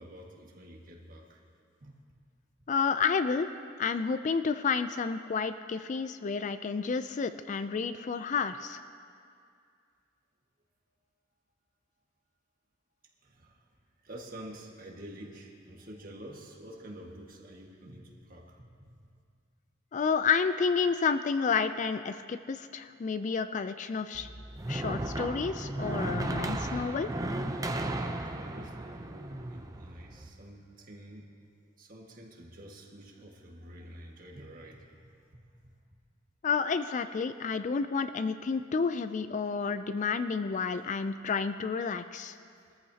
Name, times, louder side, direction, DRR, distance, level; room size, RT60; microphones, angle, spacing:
voice 1, 0.0-1.4 1.8-1.9 13.2-13.7 14.0-18.9 27.9-31.4 31.8-35.7, right 1 dB, 45° right, -1 dB, 1.7 m, -48 dB
voice 2, 2.7-3.5 3.8-8.8 19.9-24.3 24.7-27.1 36.4-42.4, left 5 dB, 40° left, 11 dB, 0.3 m, -30 dB
sound 1, 24.1-30.3, right 1 dB, 15° right, 0.6 m, -35 dB
22.5 x 14.0 x 2.8 m, 2.3 s
head